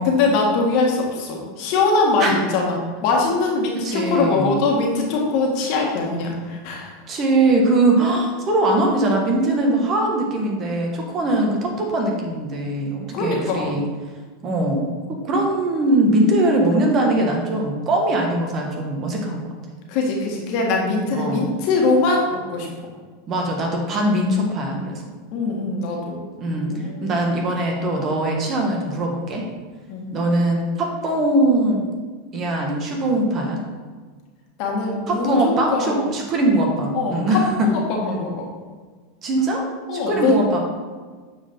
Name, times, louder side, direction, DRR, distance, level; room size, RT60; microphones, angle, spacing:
voice 1, 0.1-7.0 13.1-13.7 19.9-22.9 25.3-26.2 26.6-27.4 29.9-30.1 34.6-36.0 36.9-38.5 39.9-40.4, left 3 dB, 60° left, 0 dB, 1.8 m, -22 dB
voice 2, 3.8-4.5 7.1-13.8 14.4-19.5 21.1-21.5 23.3-25.0 26.4-29.4 30.1-31.9 32.3-33.6 35.1-37.7 39.2-39.7 39.9-40.6, right 1 dB, 40° right, 1 dB, 1.7 m, -21 dB
8.7 x 4.6 x 3.8 m, 1.5 s
hypercardioid pair, 100°, 0 cm